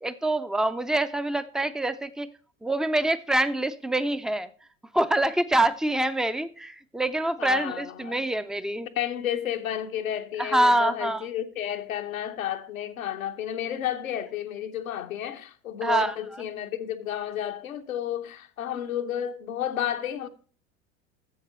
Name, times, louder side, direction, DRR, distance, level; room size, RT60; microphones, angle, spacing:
voice 1, 0.0-2.3 2.6-4.5 4.9-8.9 10.4-11.2 15.8-16.1, right 1 dB, ahead, 0.3 m, -25 dB
voice 2, 7.4-8.3 9.0-20.3, left 10 dB, 85° left, 0.8 m, -31 dB
7.4 x 7.2 x 5.4 m
hypercardioid pair, 75°, 40 cm